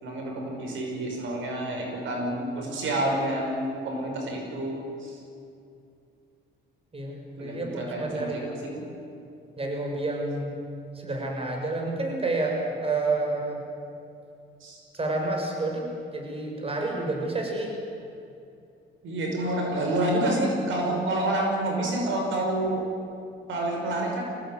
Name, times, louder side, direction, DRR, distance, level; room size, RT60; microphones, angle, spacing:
voice 1, 0.0-5.2 7.4-8.9 14.6-14.8 19.0-22.9 23.5-24.2, right 1 dB, 80° right, 1 dB, 5.8 m, -28 dB
voice 2, 6.9-8.4 9.6-10.6 10.9-13.6 14.9-15.8 16.1-17.7, right 2 dB, 30° right, 1 dB, 6.4 m, -29 dB
24.0 x 18.0 x 9.5 m, 2.6 s
cardioid pair, 90°, 20 cm